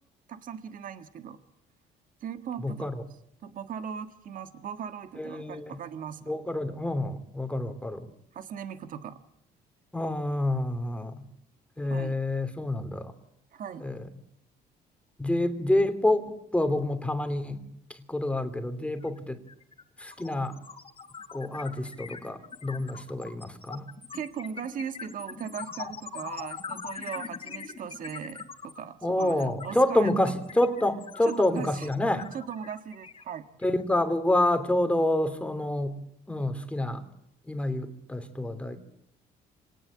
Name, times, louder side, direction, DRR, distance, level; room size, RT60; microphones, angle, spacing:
voice 1, 0.3-1.4 2.2-2.9 3.4-6.2 8.3-9.2 11.8-12.1 13.5-13.9 24.1-30.1 31.2-31.9 32.3-33.5, right 8 dB, 55° right, 9 dB, 1.6 m, -38 dB
voice 2, 2.6-3.0 5.1-5.8 6.2-8.1 9.9-11.2 11.8-13.1 13.8-14.0 15.2-17.6 17.9-19.4 20.0-20.6 21.3-23.9 29.0-32.3 33.6-36.0 36.3-37.1 37.4-38.8, left 1 dB, 5° left, 8 dB, 2.9 m, -28 dB
sound 1, 19.0-19.2 19.5-33.8, left 5 dB, 35° left, 3.1 m, -42 dB
26.0 x 19.0 x 8.8 m, 0.79 s
cardioid pair, 110°, 17 cm